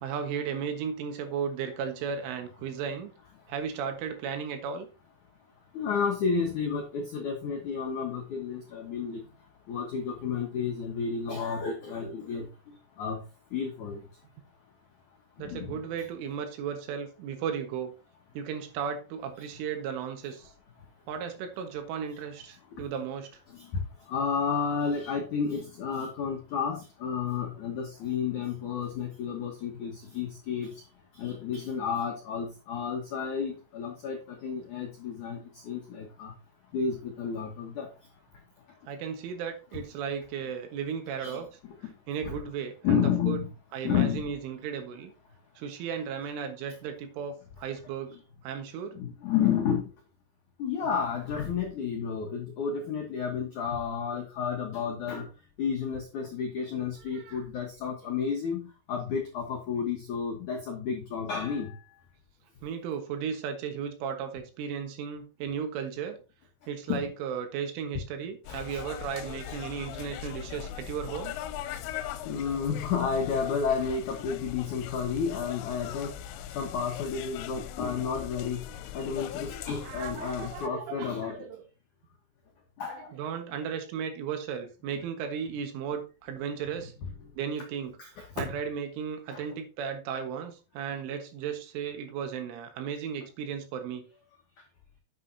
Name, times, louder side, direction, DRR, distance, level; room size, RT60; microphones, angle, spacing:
voice 1, 0.0-3.1 3.5-4.9 15.4-17.9 18.3-20.5 21.1-23.3 38.9-41.5 42.1-43.5 43.7-45.1 45.6-48.1 48.4-49.0 57.1-57.4 58.0-58.1 62.6-66.2 66.7-71.4 79.8-81.6 82.9-86.9 87.4-88.0 88.4-94.0, right 7 dB, 80° right, 6 dB, 3.9 m, -35 dB
voice 2, 5.7-9.2 9.7-12.5 13.0-13.2 13.5-14.0 15.4-15.8 23.5-23.7 24.1-30.7 31.2-35.4 35.7-36.3 36.7-37.9 41.2-41.4 42.2-42.3 42.8-43.5 43.8-44.2 48.9-49.9 50.6-55.3 55.6-61.7 66.9-67.1 68.5-68.8 69.5-69.6 72.3-76.1 76.5-78.6 78.9-81.4 82.8-83.1 88.0-88.1 89.3-89.4, left 6 dB, 75° left, 1 dB, 1.8 m, -31 dB
sound 1, 68.4-80.7, left 11 dB, 90° left, 3.2 m, -40 dB
10.0 x 8.5 x 2.8 m, 0.32 s
omnidirectional pair, 5.7 m